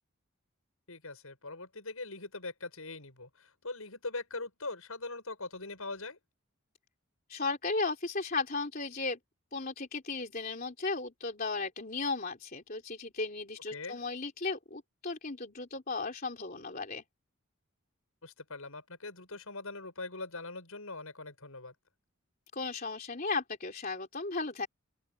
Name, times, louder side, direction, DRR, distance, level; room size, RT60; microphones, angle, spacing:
voice 1, 0.9-6.2 13.7-14.0 18.2-21.7, left 3 dB, 80° left, 6.8 m, -42 dB
voice 2, 7.3-9.2 9.5-17.0 22.5-24.7, left 3 dB, 40° left, 3.3 m, -35 dB
open air
head